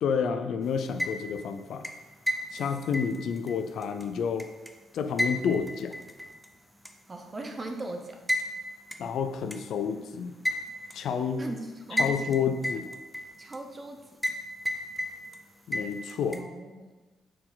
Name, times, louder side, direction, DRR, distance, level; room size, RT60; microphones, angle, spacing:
voice 1, 0.0-1.9 2.5-4.5 4.9-6.0 9.0-10.3 10.9-11.4 12.0-12.8 15.7-16.4, left 6 dB, 70° left, 8 dB, 0.4 m, -29 dB
sound 1, 0.8-1.4 1.8-4.7 5.2-6.5 6.8-6.9 8.3-8.5 8.9-9.0 9.5-9.6 10.4-11.0 12.0-12.4 12.6-13.6 14.2-14.4 14.7-15.4 15.7-16.4, equal, ahead, 0.5 m, -31 dB
voice 2, 7.1-8.2 11.4-12.3 13.4-14.2 16.3-16.9, right 2 dB, 30° right, 4 dB, 0.9 m, -39 dB
6.4 x 4.4 x 3.9 m, 1.2 s
cardioid pair, 90°, 0 cm